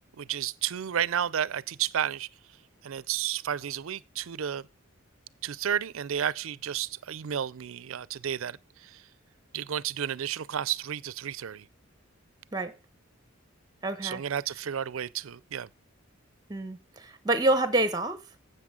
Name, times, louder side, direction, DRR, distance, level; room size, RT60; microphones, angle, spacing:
voice 1, 0.2-2.3 2.8-4.6 5.4-9.0 9.5-11.7 14.0-15.7, right 9 dB, 80° right, 0.5 m, -32 dB
voice 2, 13.8-14.2 16.5-18.2, right 2 dB, 20° right, 1.1 m, -27 dB
12.0 x 8.0 x 3.8 m
head